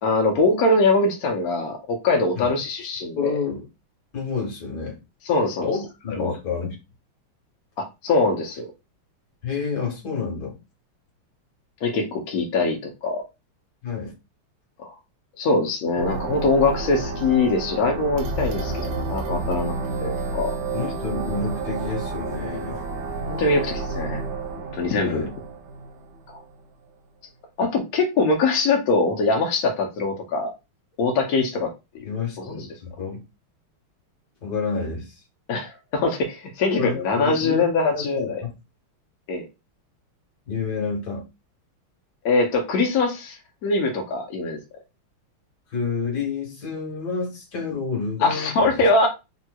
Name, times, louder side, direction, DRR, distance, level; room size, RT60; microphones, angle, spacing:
voice 1, 0.0-3.4 5.3-5.7 6.2-6.3 7.8-8.7 11.8-13.2 14.8-14.9 15.4-19.7 20.0-20.5 23.3-24.2 24.6-25.3 26.3-26.4 27.6-30.5 31.0-32.1 32.4-32.7 35.5-38.4 39.3-39.4 42.2-44.6 48.2-49.1, left 3 dB, 70° left, 0.9 m, -23 dB
voice 2, 3.2-3.7 4.1-5.0 5.6-6.8 9.4-10.6 13.8-14.1 20.7-22.8 25.0-25.3 32.0-33.2 34.4-35.2 36.8-37.6 37.9-38.5 40.5-41.2 45.7-48.8, left 5 dB, 55° left, 1.7 m, -29 dB
sound 1, 16.0-26.5, right 3 dB, 75° right, 1.0 m, -30 dB
3.4 x 2.8 x 2.2 m
omnidirectional pair, 2.3 m